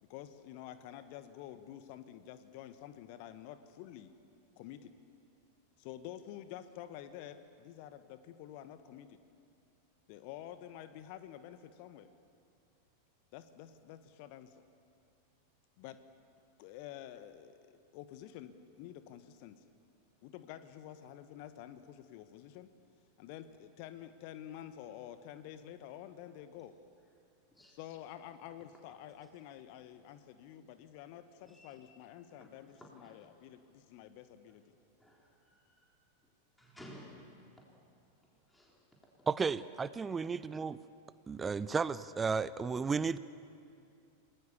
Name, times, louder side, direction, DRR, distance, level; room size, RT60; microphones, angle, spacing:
voice 1, 0.0-4.1 4.6-4.9 5.8-9.2 10.1-12.1 13.3-14.6 15.8-16.0 16.6-17.6 17.9-19.6 20.2-22.7 23.2-26.8 27.7-34.6, left 11 dB, 45° left, 11 dB, 1.2 m, -49 dB
voice 2, 31.4-31.7 32.4-33.3 34.5-34.6 35.0-35.9 36.6-37.6 38.5-38.8 39.2-39.3 40.4-40.5, equal, 5° left, -3 dB, 4.0 m, -56 dB
voice 3, 39.3-40.8 41.3-43.2, right 5 dB, 15° right, 17 dB, 0.6 m, -33 dB
29.5 x 20.0 x 7.2 m, 2.4 s
figure-of-eight pair, 90°, 0 cm